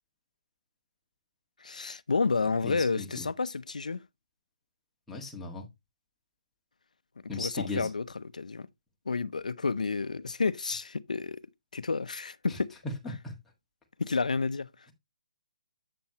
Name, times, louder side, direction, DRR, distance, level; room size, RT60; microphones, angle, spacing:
voice 1, 1.6-4.0 7.3-8.7 9.1-11.4 11.7-12.8 14.0-14.7, left 4 dB, 85° left, 0.6 m, -30 dB
voice 2, 2.6-3.3 5.1-5.7 7.3-7.9 13.2-13.4, left 3 dB, 5° left, 1.7 m, -37 dB
7.7 x 7.1 x 2.9 m
hypercardioid pair, 160°, 4 cm